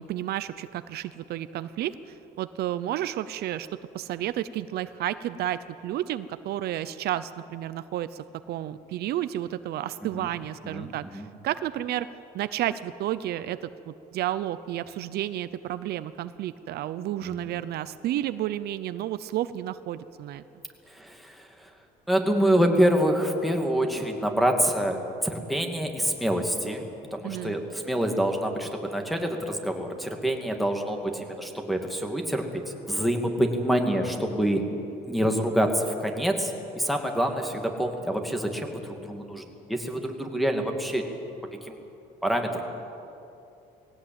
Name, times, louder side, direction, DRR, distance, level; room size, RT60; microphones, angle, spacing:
voice 1, 0.0-1.9 2.4-3.7 3.9-12.1 12.3-20.4 27.2-27.6, right 12 dB, 70° right, 13 dB, 0.7 m, -31 dB
voice 2, 10.6-11.3 17.2-17.5 20.9-21.7 22.1-26.9 27.1-34.7 35.1-41.0 41.5-41.8 42.2-42.6, equal, ahead, 2 dB, 2.5 m, -26 dB
20.0 x 17.0 x 9.0 m, 2.8 s
cardioid pair, 110°, 17 cm